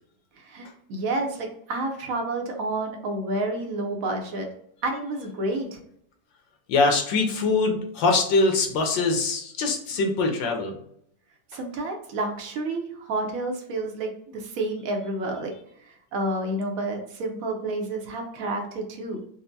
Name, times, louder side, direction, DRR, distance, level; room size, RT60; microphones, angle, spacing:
voice 1, 0.4-4.5 4.8-5.8 11.5-15.5 15.9-19.3, right 2 dB, 65° right, 2 dB, 0.9 m, -30 dB
voice 2, 6.7-10.8, left 3 dB, 85° left, 3 dB, 1.5 m, -23 dB
4.4 x 2.1 x 2.6 m, 0.71 s
omnidirectional pair, 2.0 m